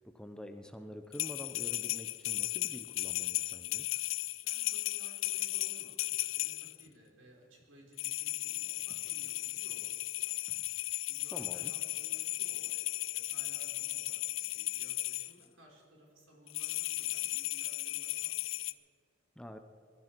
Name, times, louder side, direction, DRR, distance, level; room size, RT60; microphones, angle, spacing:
voice 1, 0.0-3.9 11.3-11.7 19.4-19.6, equal, 5° left, 7 dB, 0.6 m, -47 dB
sound 1, 1.1-6.8 8.0-15.3 16.5-18.7, left 18 dB, 80° left, 0.5 m, -36 dB
voice 2, 4.4-10.3 11.1-18.5, equal, 85° right, -1 dB, 4.1 m, -59 dB
sound 2, 5.4-5.8 6.1-6.4 6.6-7.1 7.4-7.9 8.5-8.6 8.9-9.1 9.4-10.8, left 1 dB, 50° left, 1.4 m, -65 dB
22.5 x 12.5 x 4.6 m, 2.5 s
head